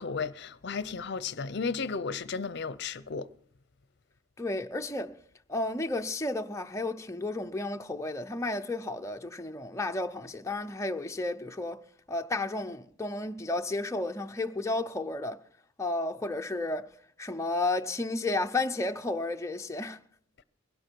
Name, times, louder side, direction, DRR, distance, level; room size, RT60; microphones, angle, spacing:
voice 1, 0.0-3.3, left 5 dB, 60° left, 0.6 m, -34 dB
voice 2, 4.4-5.2 5.5-11.8 12.1-15.4 15.8-16.9 17.2-20.0, left 2 dB, 15° left, 0.6 m, -32 dB
21.5 x 11.5 x 4.6 m
head